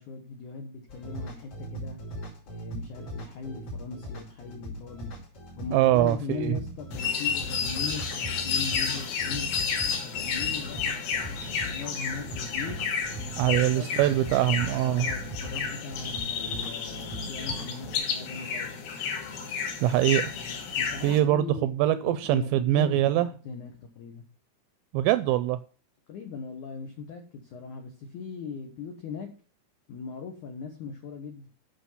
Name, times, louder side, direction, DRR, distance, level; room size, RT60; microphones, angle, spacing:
voice 1, 0.0-2.0 2.5-5.1 5.6-9.5 10.0-12.8 13.4-14.2 14.8-18.8 20.7-24.2 26.1-29.3 29.9-31.5, left 5 dB, 85° left, 1.7 m, -39 dB
sound 1, 0.9-18.0, right 1 dB, 35° left, 2.7 m, -40 dB
voice 2, 5.7-6.6 13.4-15.1 19.8-20.2 21.0-23.3 24.9-25.6, right 13 dB, 85° right, 2.6 m, -23 dB
sound 2, 6.9-21.2, left 6 dB, 65° left, 2.8 m, -31 dB
8.1 x 6.1 x 5.6 m
omnidirectional pair, 5.4 m